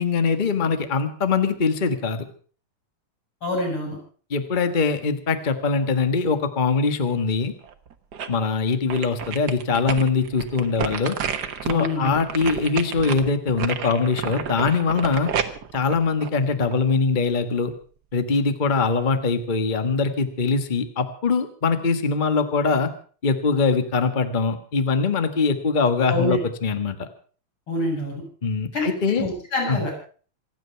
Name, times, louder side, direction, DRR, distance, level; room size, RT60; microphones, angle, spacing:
voice 1, 0.0-2.3 4.3-7.5 8.3-11.2 11.6-15.3 15.7-17.7 18.1-22.9 23.2-27.1 28.4-29.3 29.7-29.8, left 4 dB, 65° left, 9 dB, 0.4 m, -22 dB
voice 2, 3.4-4.0 11.6-12.1 26.1-26.4 27.7-28.2 28.7-29.9, left 1 dB, 40° left, -2 dB, 9.0 m, -26 dB
sound 1, 7.6-8.5 8.9-17.0 17.4-17.5, right 7 dB, 55° right, 1.1 m, -31 dB
26.5 x 9.2 x 5.6 m, 0.42 s
omnidirectional pair, 3.5 m